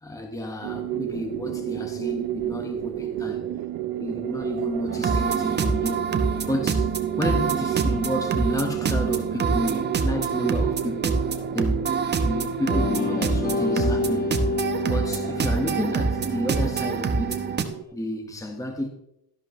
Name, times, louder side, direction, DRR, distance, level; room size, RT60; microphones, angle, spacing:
voice 1, 0.0-3.5 4.0-6.1 6.5-6.9 7.2-11.2 11.5-11.9 12.2-14.3 14.8-17.4 17.9-18.9, left 1 dB, 10° left, 1.4 m, -31 dB
sound 1, 0.6-17.8, right 12 dB, 80° right, 0.9 m, -32 dB
sound 2, 4.9-17.6, right 4 dB, 30° right, 1.1 m, -26 dB
sound 3, 12.7-17.3, left 4 dB, 25° left, 1.1 m, -29 dB
12.5 x 11.5 x 3.2 m
cardioid pair, 120°, 35 cm